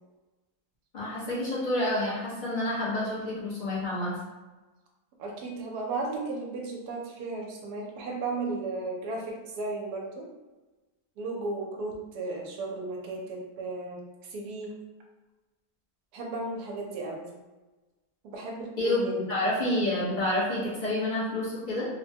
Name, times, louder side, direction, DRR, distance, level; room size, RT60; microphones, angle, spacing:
voice 1, 0.9-4.1 18.8-21.9, left 1 dB, 35° left, -7 dB, 0.9 m, -28 dB
voice 2, 5.2-10.3 11.2-14.7 16.1-17.3 18.2-19.2, right 3 dB, 85° right, 0 dB, 1.2 m, -35 dB
3.2 x 2.1 x 2.7 m, 1.2 s
omnidirectional pair, 1.6 m